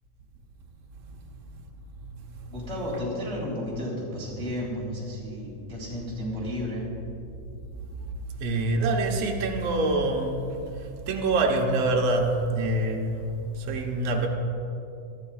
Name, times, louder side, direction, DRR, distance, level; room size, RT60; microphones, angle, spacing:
voice 1, 2.5-6.9, left 1 dB, ahead, -7 dB, 2.8 m, -32 dB
voice 2, 8.4-10.4 11.1-13.2 13.5-14.3, right 2 dB, 75° right, 1 dB, 1.4 m, -25 dB
24.0 x 12.5 x 2.4 m, 2.7 s
omnidirectional pair, 4.4 m